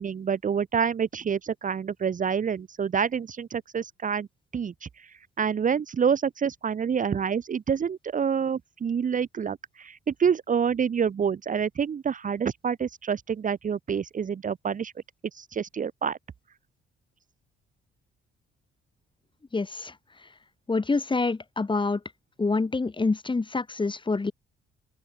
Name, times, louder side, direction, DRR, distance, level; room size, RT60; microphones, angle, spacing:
voice 1, 0.0-4.3 4.5-4.7 5.4-14.9 15.4-16.2, right 7 dB, 40° right, 1.1 m, -27 dB
voice 2, 19.5-19.9 20.7-22.0 22.4-24.3, left 3 dB, 25° left, 5.6 m, -26 dB
open air
cardioid pair, 90°, 20 cm